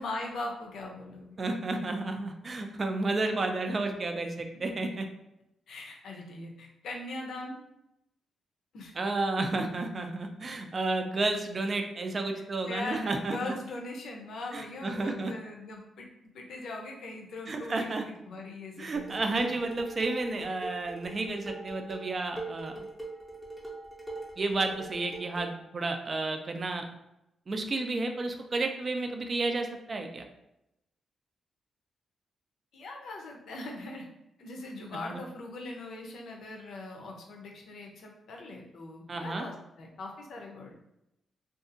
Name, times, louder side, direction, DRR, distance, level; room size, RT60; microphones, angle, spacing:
voice 1, 0.0-1.4 5.7-7.6 8.7-8.9 12.6-16.1 16.3-19.5 32.7-34.0 34.4-40.7, left 2 dB, 75° left, 0 dB, 0.6 m, -40 dB
voice 2, 1.4-5.1 9.0-13.5 14.5-15.3 17.5-18.1 18.8-22.8 24.4-26.8 27.5-30.3 34.9-35.2 39.1-39.5, right 2 dB, 35° right, 5 dB, 0.3 m, -31 dB
Dishes pots and pans, 19.0-25.6, right 2 dB, 5° right, 0.6 m, -42 dB
2.7 x 2.4 x 2.5 m, 0.86 s
cardioid pair, 120°, 0 cm